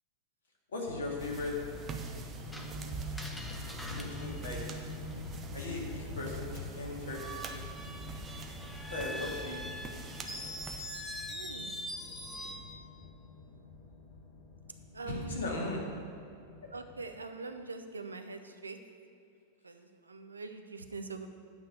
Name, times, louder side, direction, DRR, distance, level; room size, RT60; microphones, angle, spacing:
voice 1, 0.7-1.5 3.9-4.6 5.5-7.6 8.9-9.6 15.0-15.8, left 2 dB, 65° left, -2 dB, 2.2 m, -38 dB
sound 1, 0.9-17.2, left 4 dB, 45° left, 1.1 m, -46 dB
sound 2, 1.2-10.8, right 6 dB, 25° right, 0.8 m, -45 dB
Screech, 2.5-5.4 7.0-12.8, equal, 5° left, 0.9 m, -44 dB
voice 2, 11.3-11.7 14.9-15.4 16.7-18.8 19.6-21.3, right 4 dB, 75° right, 7 dB, 0.6 m, -43 dB
8.9 x 5.6 x 8.0 m, 2.5 s
figure-of-eight pair, 90°, 0 cm